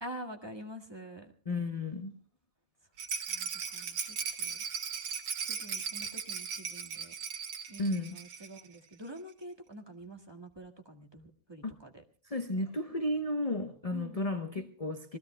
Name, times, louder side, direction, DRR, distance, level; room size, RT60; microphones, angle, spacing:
voice 1, 0.0-1.3 3.3-4.6 5.5-7.1 7.7-12.0 13.9-14.2, right 1 dB, 15° right, 2 dB, 1.6 m, -47 dB
voice 2, 1.5-2.2 7.8-8.2 11.6-11.7 12.3-15.2, left 1 dB, 55° left, 7 dB, 0.4 m, -33 dB
Rattle, 3.0-8.7 8.9-9.0 9.3-9.4, right 6 dB, 85° right, 2.6 m, -38 dB
27.0 x 20.0 x 2.2 m, 0.39 s
omnidirectional pair, 2.2 m